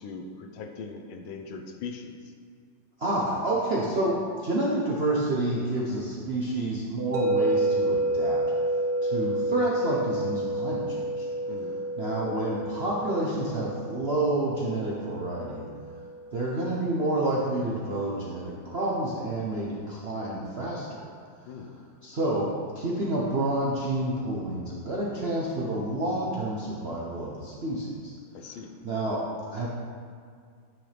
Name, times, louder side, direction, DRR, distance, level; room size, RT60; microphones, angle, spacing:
voice 1, 0.0-2.2 11.5-11.8 21.5-21.8 28.3-28.8, left 4 dB, 75° left, 4 dB, 1.4 m, -40 dB
voice 2, 3.0-8.5 9.0-11.3 11.6-15.7 16.3-21.0 21.5-21.6 22.0-28.1 28.8-29.7, right 1 dB, 55° right, -5 dB, 0.7 m, -29 dB
sound 1, 7.1-17.2, right 2 dB, 90° right, 1.6 m, -30 dB
9.6 x 6.3 x 3.4 m, 2.1 s
omnidirectional pair, 2.2 m